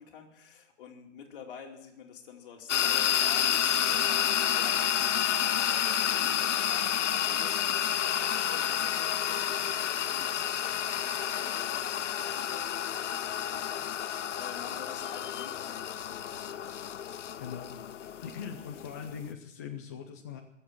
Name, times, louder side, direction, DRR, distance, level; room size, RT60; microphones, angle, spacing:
voice 1, 0.0-16.6, left 7 dB, 45° left, 2 dB, 2.7 m, -49 dB
sound 1, 2.7-19.3, left 9 dB, 70° left, 0.8 m, -30 dB
voice 2, 17.4-17.7 18.2-20.4, left 7 dB, 15° left, 2 dB, 0.4 m, -41 dB
21.5 x 7.5 x 7.5 m, 0.84 s
hypercardioid pair, 150°, 37 cm